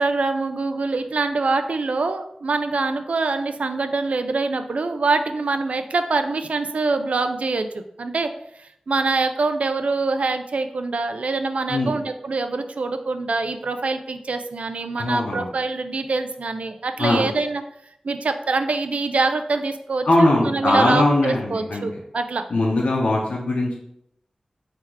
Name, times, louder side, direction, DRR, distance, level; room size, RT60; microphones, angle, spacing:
voice 1, 0.0-8.3 8.6-17.6 18.0-22.4, right 3 dB, 75° right, 8 dB, 0.4 m, -24 dB
voice 2, 15.0-15.5 17.0-17.3 20.0-21.8 22.5-23.7, left 2 dB, 90° left, -3 dB, 0.7 m, -20 dB
3.8 x 2.9 x 4.5 m, 0.72 s
wide cardioid pair, 75°, 2 cm